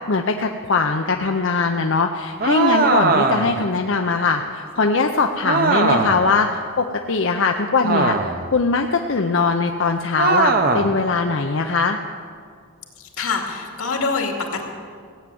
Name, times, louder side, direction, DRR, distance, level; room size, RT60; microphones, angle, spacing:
voice 1, 0.1-8.2 8.5-12.0, left 4 dB, 60° left, 4 dB, 0.6 m, -21 dB
sound 1, 2.4-3.6 5.4-6.3 7.8-8.5 10.2-11.0, right 3 dB, 45° right, 0.9 m, -19 dB
voice 2, 13.0-14.7, left 4 dB, 80° left, 2 dB, 2.3 m, -25 dB
16.5 x 9.3 x 7.7 m, 2.2 s
head